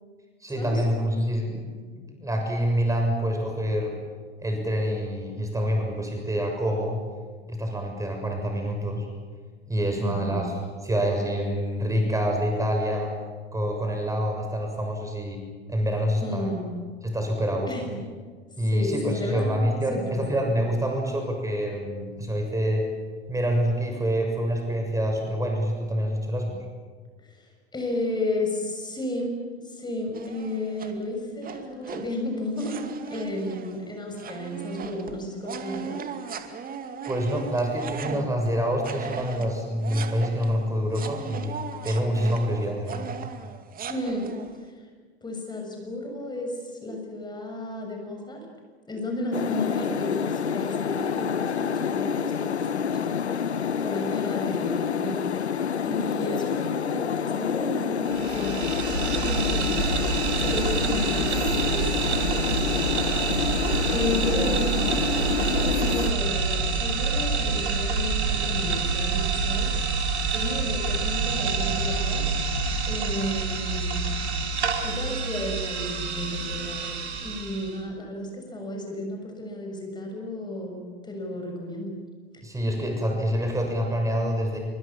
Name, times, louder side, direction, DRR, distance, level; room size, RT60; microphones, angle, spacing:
voice 1, 0.4-1.7 1.9-3.9 4.4-7.0 7.5-9.1 9.7-13.1 13.5-15.4 15.7-16.5 17.0-17.9 18.6-22.9 23.3-26.6 37.1-43.2 82.4-84.6, equal, 10° right, 2 dB, 6.9 m, -26 dB
voice 2, 10.0-10.4 16.2-16.7 17.7-18.0 18.7-20.3 27.2-29.4 29.6-36.0 43.9-44.3 44.6-44.7 45.2-48.5 48.9-53.1 53.8-55.5 55.8-59.9 60.4-62.7 63.9-69.8 70.3-72.3 72.9-74.0 74.8-81.9 82.3-82.4, left 1 dB, 15° left, 2 dB, 6.9 m, -33 dB
sound 1, 30.1-31.0 31.4-32.2 32.6-38.5 38.8-44.6, right 6 dB, 25° right, 2.4 m, -38 dB
sound 2, 49.3-66.1, left 7 dB, 90° left, 0.9 m, -28 dB
sound 3, 58.1-77.8, right 4 dB, 80° right, 3.7 m, -27 dB
27.5 x 25.0 x 7.4 m, 1.5 s
hypercardioid pair, 90°, 33 cm